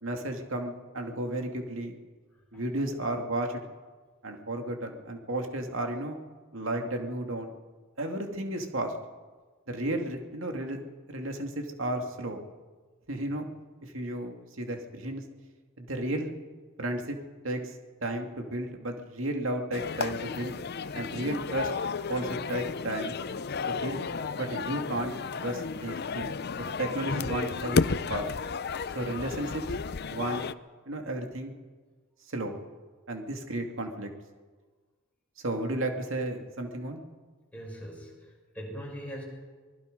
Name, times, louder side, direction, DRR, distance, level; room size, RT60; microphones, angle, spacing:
voice 1, 0.0-1.9 2.5-3.6 4.2-6.2 6.5-7.5 8.0-8.9 9.7-10.8 11.1-12.4 13.1-13.5 13.8-15.2 15.8-16.3 16.8-17.2 17.4-17.8 18.0-20.6 20.9-21.7 22.1-23.2 23.7-24.1 24.4-26.3 26.8-28.3 28.9-29.6 30.1-30.4 30.9-31.5 32.3-32.6 33.1-34.1 35.4-37.0, right 1 dB, 70° right, 3 dB, 2.4 m, -33 dB
sound 1, 19.7-30.5, left 5 dB, 50° left, 0.6 m, -33 dB
voice 2, 37.5-39.2, equal, 5° left, -3 dB, 6.3 m, -42 dB
24.5 x 20.0 x 5.3 m, 1.4 s
head